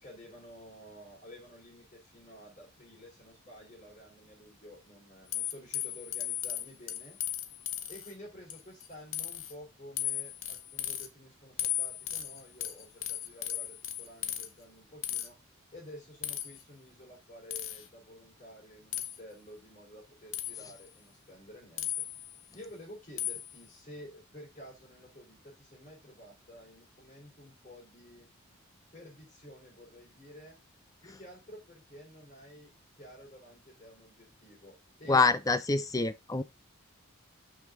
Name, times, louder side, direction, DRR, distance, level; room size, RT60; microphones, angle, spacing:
voice 1, 0.0-7.2 7.9-15.3 15.7-21.9 22.5-28.3 28.9-30.6 31.0-32.7 33.0-35.2, equal, 30° left, 3.7 m, -51 dB
sound 1, 5.3-8.1 8.5-8.9 9.1-9.5 10.0-11.1 11.6-14.5 15.0-15.3 16.2-16.6 17.5-17.9 18.9-19.2 20.3-20.8 21.8-22.4 23.2-23.6, left 13 dB, 65° left, 1.0 m, -36 dB
voice 2, 35.1-36.4, left 3 dB, 15° left, 0.5 m, -26 dB
5.8 x 5.8 x 3.7 m
head